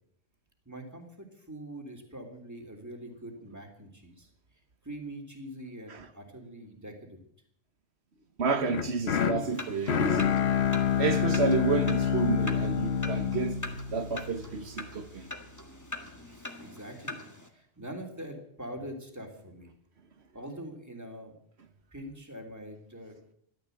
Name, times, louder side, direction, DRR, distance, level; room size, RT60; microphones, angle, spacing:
voice 1, 0.6-4.3 4.8-7.2 16.3-17.2 17.5-19.7 20.3-21.3 21.9-23.2, right 1 dB, 15° right, 3.0 m, -43 dB
voice 2, 8.4-10.4 11.0-13.6 13.9-15.3, right 5 dB, 90° right, 1.6 m, -30 dB
sound 1, 8.7-14.8, left 7 dB, 80° left, 1.2 m, -28 dB
sound 2, 9.4-17.5, left 2 dB, 15° left, 1.8 m, -43 dB
14.5 x 12.5 x 7.9 m
omnidirectional pair, 1.1 m